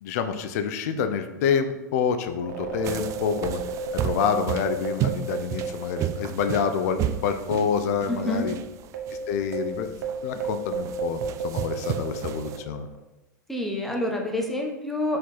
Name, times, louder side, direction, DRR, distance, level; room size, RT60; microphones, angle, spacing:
voice 1, 0.0-3.6 3.9-8.5 9.3-9.9 10.2-12.9, left 7 dB, 55° left, 8 dB, 0.7 m, -27 dB
sound 1, 2.4-7.2 7.5-7.6 8.2-13.0, right 4 dB, 65° right, 1.3 m, -33 dB
sound 2, 2.8-12.6, right 11 dB, 30° right, 0.3 m, -33 dB
voice 2, 8.1-8.5 13.5-15.2, left 1 dB, ahead, 0 dB, 1.0 m, -27 dB
6.0 x 4.5 x 4.1 m, 0.98 s
hypercardioid pair, 105°, 10 cm